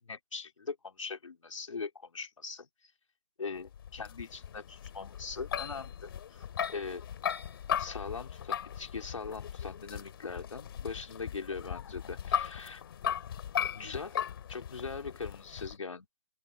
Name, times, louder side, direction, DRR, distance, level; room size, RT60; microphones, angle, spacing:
voice 1, 0.0-2.7 3.4-7.0 7.8-12.8 13.7-16.1, left 4 dB, 75° left, 4.2 m, -41 dB
sound 1, 3.7-15.8, left 9 dB, 45° left, 2.6 m, -38 dB
open air
hypercardioid pair, 150°, 17 cm